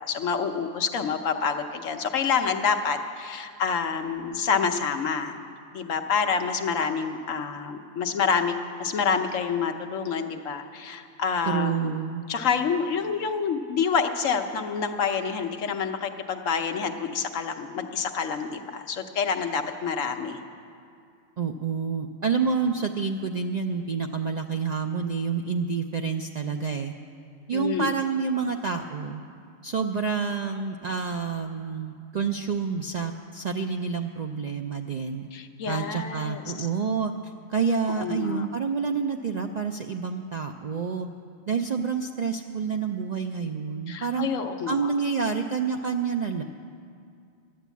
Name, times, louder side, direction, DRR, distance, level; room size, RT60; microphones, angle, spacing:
voice 1, 0.0-5.3 5.7-12.0 12.3-20.4 27.5-27.9 35.3-36.7 38.0-38.5 43.9-44.9, left 6 dB, 80° left, 5 dB, 1.2 m, -27 dB
voice 2, 11.4-12.2 21.4-26.9 27.5-29.2 29.6-35.3 35.7-37.1 37.5-41.1 41.5-44.3 44.7-46.4, right 5 dB, 65° right, 4 dB, 0.4 m, -28 dB
12.5 x 9.9 x 8.2 m, 2.4 s
omnidirectional pair, 1.3 m